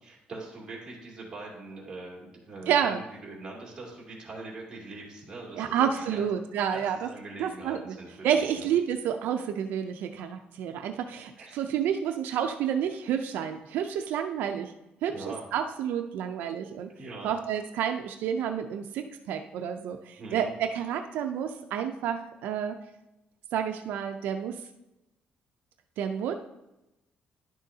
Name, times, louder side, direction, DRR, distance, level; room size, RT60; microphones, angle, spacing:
voice 1, 0.0-6.2 6.7-8.7 11.4-11.6 15.1-15.4 16.9-17.3 20.2-20.5, right 2 dB, 25° right, -4 dB, 2.4 m, -42 dB
voice 2, 2.7-3.0 5.6-7.1 7.4-7.9 8.2-14.7 15.0-16.9 17.2-22.8 23.5-24.6 26.0-26.3, right 8 dB, 85° right, 6 dB, 0.5 m, -29 dB
11.0 x 6.3 x 2.7 m, 0.95 s
cardioid pair, 150°, 3 cm